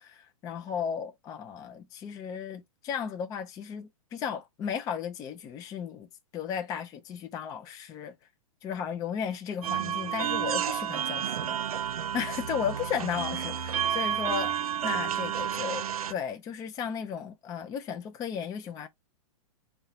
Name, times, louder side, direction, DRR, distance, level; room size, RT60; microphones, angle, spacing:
voice 1, 0.0-8.2 8.6-18.9, left 7 dB, 20° left, 0.4 m, -35 dB
sound 1, 9.6-16.1, right 9 dB, 80° right, 0.6 m, -31 dB
3.7 x 2.2 x 4.1 m
hypercardioid pair, 125°, 18 cm